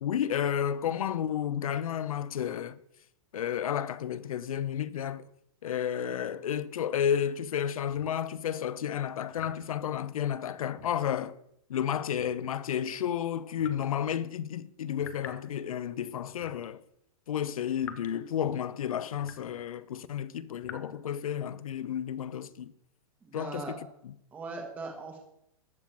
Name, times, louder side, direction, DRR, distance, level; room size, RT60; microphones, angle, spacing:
voice 1, 0.0-2.8 3.3-5.3 5.6-11.4 11.7-16.8 17.3-22.7 23.3-24.1, left 9 dB, 70° left, 0.9 m, -32 dB
sound 1, 8.0-8.2 9.4-9.7 10.8-11.2 12.2-12.6 13.6-13.9 15.0-15.5 16.4-16.7 17.8-18.1 19.2-19.6 20.6-20.8, left 8 dB, 10° left, 0.6 m, -46 dB
voice 2, 23.2-23.8 24.3-25.2, right 3 dB, 10° right, 1.2 m, -39 dB
14.0 x 5.9 x 8.9 m
hypercardioid pair, 180°, 18 cm